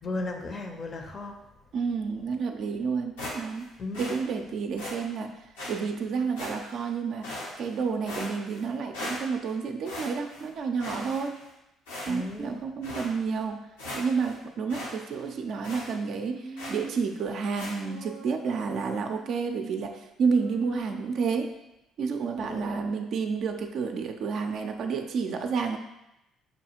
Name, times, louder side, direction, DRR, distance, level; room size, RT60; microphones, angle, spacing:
voice 1, 0.0-1.4 3.8-4.1 12.1-12.6 22.4-22.8, left 2 dB, 40° left, 4 dB, 0.6 m, -35 dB
voice 2, 1.7-3.6 4.0-5.3 5.7-7.3 7.6-11.4 12.1-13.6 13.9-21.5 22.0-25.8, right 5 dB, 60° right, 4 dB, 0.4 m, -30 dB
sound 1, 3.2-3.7 3.9-4.2 4.8-5.0 5.6-5.7 6.4-6.8 7.2-7.7 8.1-8.7 8.9-9.5 9.8-10.5 10.8-11.5 11.9-12.4 12.8-13.1 13.5-13.6 13.8-14.4 14.7-14.9 15.2-15.3 15.6-15.9 16.6-16.9 17.6-17.8, left 1 dB, 90° left, 0.8 m, -38 dB
Human voice, 16.3-17.3 17.8-19.4 20.2-21.5, right 3 dB, 70° left, 1.1 m, -43 dB
5.4 x 2.3 x 2.8 m, 0.91 s
hypercardioid pair, 55°, 0 cm